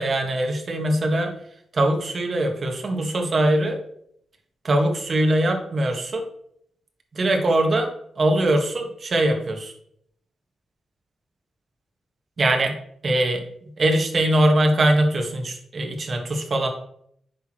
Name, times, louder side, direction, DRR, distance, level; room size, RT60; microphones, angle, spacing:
voice 1, 0.0-1.4 1.7-3.8 4.6-6.2 7.1-7.9 8.2-9.7 12.4-12.7 13.0-16.7, right 1 dB, 45° right, 3 dB, 1.4 m, -22 dB
8.3 x 6.2 x 3.0 m, 0.68 s
cardioid pair, 105°, 0 cm